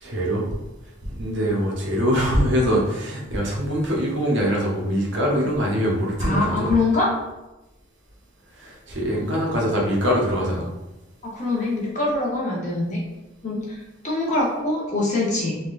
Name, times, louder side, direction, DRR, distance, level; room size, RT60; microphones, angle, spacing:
voice 1, 0.0-0.5 1.0-6.7 8.6-10.7, equal, 60° right, -3 dB, 0.8 m, -23 dB
voice 2, 6.2-7.1 11.2-13.0 13.4-13.8 14.0-15.6, left 2 dB, 35° left, -4 dB, 0.8 m, -23 dB
3.4 x 2.2 x 2.4 m, 1.0 s
head